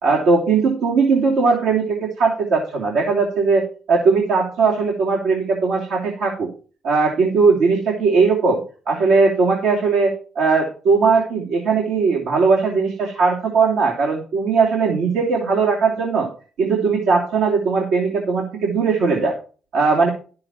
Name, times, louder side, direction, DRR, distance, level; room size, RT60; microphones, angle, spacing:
voice 1, 0.0-6.5 6.8-16.3 16.6-19.4 19.7-20.1, right 4 dB, 85° right, -4 dB, 2.9 m, -19 dB
12.0 x 7.7 x 4.3 m, 0.38 s
cardioid pair, 90°, 0 cm